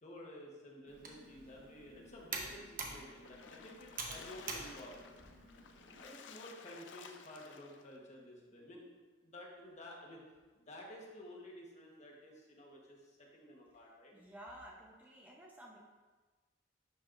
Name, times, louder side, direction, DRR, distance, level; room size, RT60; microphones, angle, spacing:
voice 1, 0.0-5.0 6.0-8.9 9.2-10.2 10.5-14.1, left 1 dB, 40° left, -2 dB, 1.3 m, -52 dB
Computer keyboard, 0.9-6.0, right 4 dB, 50° right, 1.0 m, -47 dB
Splash splatter, 3.1-7.9, left 5 dB, 70° left, 0.5 m, -55 dB
voice 2, 14.1-15.8, right 1 dB, 10° right, -3 dB, 0.8 m, -53 dB
11.5 x 5.5 x 2.6 m, 1.3 s
head